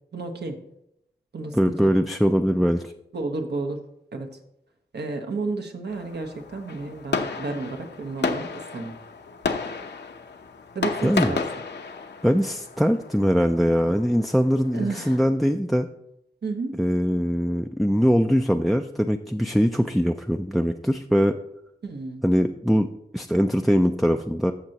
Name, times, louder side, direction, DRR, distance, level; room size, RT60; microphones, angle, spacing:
voice 1, 0.1-0.6 1.3-1.9 3.1-3.8 4.1-4.3 4.9-9.0 10.7-11.4 14.7-15.2 16.4-16.8 21.8-22.2, right 3 dB, 70° right, 4 dB, 1.2 m, -31 dB
voice 2, 1.5-2.9 11.0-11.3 12.2-15.9 16.8-21.4 22.2-24.5, equal, ahead, 6 dB, 0.4 m, -22 dB
Fireworks, 5.9-15.2, left 4 dB, 75° left, 0.8 m, -33 dB
14.5 x 6.6 x 2.9 m, 0.81 s
wide cardioid pair, 75°, 18 cm